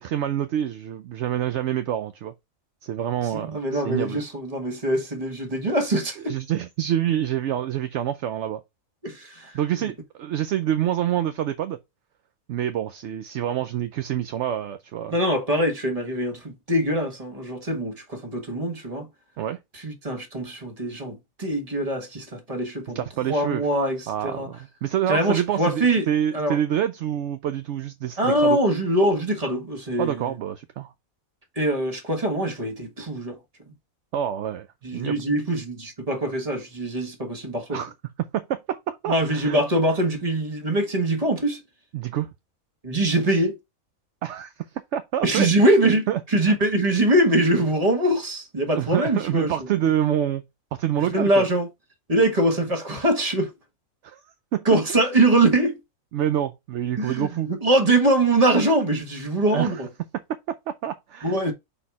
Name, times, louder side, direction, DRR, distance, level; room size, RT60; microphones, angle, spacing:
voice 1, 0.0-2.3 2.8-4.2 6.2-8.6 9.5-11.8 12.5-15.2 19.4-19.6 22.9-23.6 24.1-28.6 30.0-30.9 34.1-34.7 34.9-35.2 37.7-37.9 38.3-39.6 41.9-42.3 44.2-44.5 44.9-45.5 45.8-46.2 46.5-46.6 48.7-50.4 50.8-51.5 54.0-54.2 54.5-54.6 56.1-57.5 59.5-59.7 60.5-61.4, right 10 dB, 65° right, 0.8 m, -27 dB
voice 2, 3.2-6.3 9.0-9.9 15.1-19.1 19.7-24.5 25.1-26.1 26.3-26.6 28.2-30.3 31.5-33.4 34.8-37.8 39.1-41.6 42.8-43.5 45.2-49.6 50.9-51.7 52.1-53.5 54.6-55.8 57.0-59.9 61.2-61.5, right 1 dB, 25° right, 1.5 m, -23 dB
5.5 x 4.3 x 4.6 m
omnidirectional pair, 1.5 m